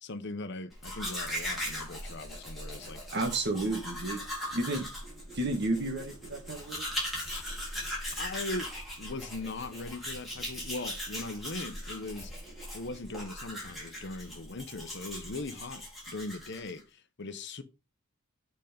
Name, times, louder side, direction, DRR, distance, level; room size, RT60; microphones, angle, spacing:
voice 1, 0.0-3.0 7.3-7.4 8.2-8.7 9.0-12.3 12.7-17.6, left 2 dB, 55° left, 0.9 m, -40 dB
Domestic sounds home sounds, 0.7-16.8, equal, ahead, 4.5 m, -39 dB
voice 2, 3.1-4.2 4.5-4.9 5.3-6.9, right 2 dB, 50° right, 1.7 m, -31 dB
8.3 x 5.3 x 5.1 m
head